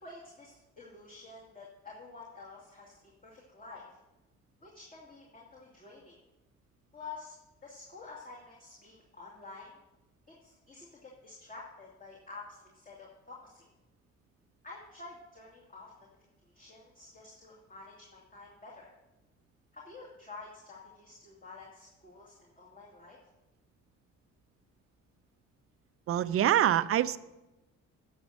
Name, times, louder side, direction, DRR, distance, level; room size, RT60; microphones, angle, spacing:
voice 1, 0.0-4.0 4.6-6.2 6.9-7.4 7.6-9.8 10.3-13.7 14.6-16.1 16.5-18.9 19.7-23.2, left 3 dB, 30° left, -4 dB, 2.4 m, -49 dB
voice 2, 26.1-27.2, right 11 dB, 50° right, 13 dB, 0.5 m, -25 dB
10.5 x 6.4 x 6.4 m, 1.0 s
cardioid pair, 90°, 30 cm